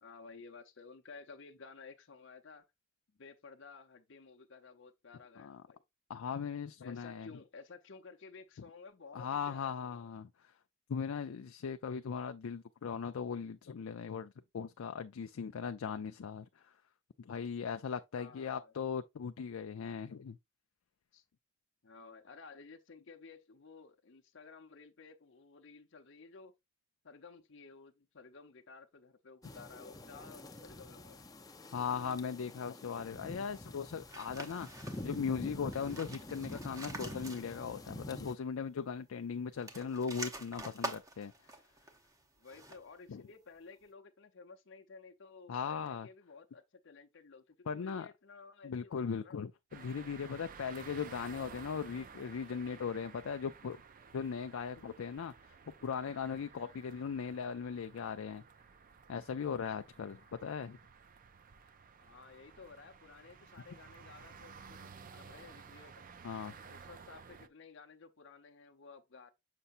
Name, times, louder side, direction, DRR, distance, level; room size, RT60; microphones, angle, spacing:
voice 1, 0.0-2.7 3.1-5.8 6.8-10.0 18.1-18.7 21.1-21.2 21.8-26.5 27.0-31.2 42.4-49.4 60.2-60.3 62.0-65.9 66.7-69.3, left 4 dB, 60° left, 0.8 m, -54 dB
voice 2, 6.1-7.3 9.1-10.5 10.9-16.7 17.2-20.4 31.7-41.3 43.1-43.2 45.5-46.1 47.7-48.1 48.6-53.8 54.1-55.5 55.8-58.4 59.1-60.8 66.2-66.7, left 6 dB, 85° left, 0.4 m, -39 dB
sound 1, 29.4-38.4, left 1 dB, 15° left, 0.6 m, -47 dB
sound 2, 34.1-35.2 35.6-37.9 38.1-38.2 39.5-43.0, right 2 dB, 15° right, 0.8 m, -46 dB
sound 3, 49.7-67.5, right 6 dB, 40° right, 0.5 m, -54 dB
6.8 x 5.5 x 2.5 m
head